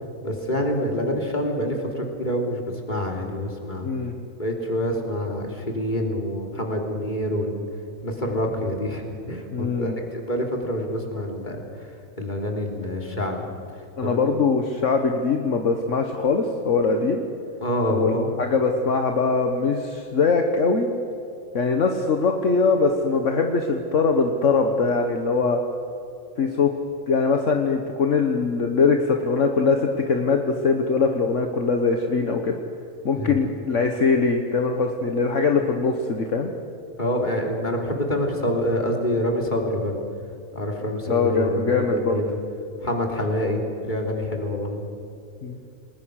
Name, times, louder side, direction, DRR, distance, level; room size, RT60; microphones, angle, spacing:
voice 1, 0.2-3.9 4.4-7.7 8.0-13.4 13.7-14.2 17.6-18.4 33.2-33.4 37.0-40.0 40.5-42.4 42.8-44.9, equal, 35° left, 1 dB, 3.4 m, -27 dB
voice 2, 9.5-10.0 14.0-17.2 17.9-18.1 18.4-20.9 21.5-25.6 26.4-26.7 27.1-32.6 33.0-36.5 41.1-42.1 45.4-45.6, left 4 dB, 65° left, 4 dB, 1.7 m, -22 dB
29.5 x 20.0 x 6.5 m, 2.6 s
omnidirectional pair, 1.4 m